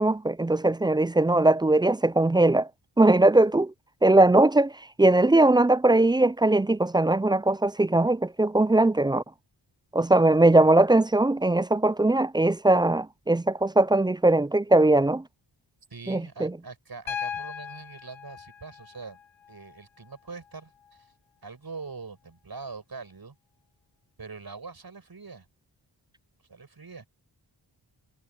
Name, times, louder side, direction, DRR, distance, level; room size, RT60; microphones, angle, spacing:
voice 1, 0.0-2.7 3.0-3.7 4.0-4.7 5.0-9.2 9.9-15.2 16.1-16.6, right 2 dB, 10° right, 0.3 m, -20 dB
voice 2, 15.9-19.2 19.5-20.7 21.4-23.4 24.2-25.5 26.5-27.1, right 4 dB, 50° right, 7.7 m, -42 dB
Piano, 17.1-21.1 22.6-22.7, left 8 dB, 75° left, 0.8 m, -39 dB
cardioid pair, 65°, 46 cm